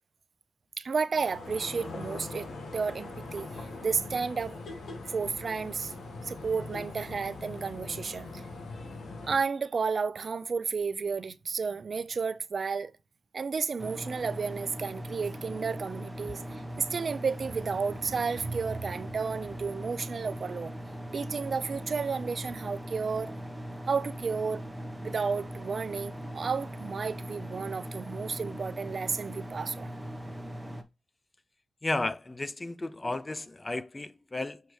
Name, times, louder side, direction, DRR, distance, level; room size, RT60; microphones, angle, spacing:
voice 1, 0.8-4.6 5.1-5.9 6.2-8.5 9.2-12.9 13.3-20.7 21.1-23.3 23.9-24.6 25.0-29.9, right 5 dB, 55° right, 0.5 m, -32 dB
sound 1, 1.1-9.4, left 3 dB, 70° left, 1.6 m, -41 dB
sound 2, 13.8-30.8, equal, 5° right, 1.1 m, -40 dB
voice 2, 31.8-34.6, left 2 dB, 25° left, 0.4 m, -33 dB
6.6 x 4.5 x 3.2 m
cardioid pair, 70°, 0 cm